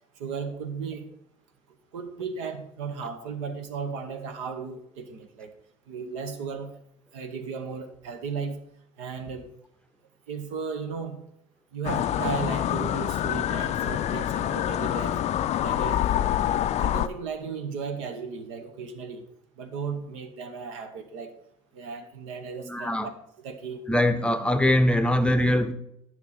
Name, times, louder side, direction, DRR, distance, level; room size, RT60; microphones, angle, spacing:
voice 1, 0.2-1.1 1.9-5.5 5.9-6.7 7.1-8.6 9.0-9.5 10.3-11.2 11.7-15.2 15.6-16.0 16.8-19.2 19.6-21.3 21.7-23.1 23.4-23.8, right 5 dB, 70° right, 1.0 m, -35 dB
sound 1, 11.8-17.1, left 11 dB, 40° left, 0.4 m, -26 dB
voice 2, 22.6-23.1 23.9-25.7, left 1 dB, 5° left, 0.7 m, -22 dB
10.5 x 6.0 x 3.9 m
figure-of-eight pair, 55°, 17 cm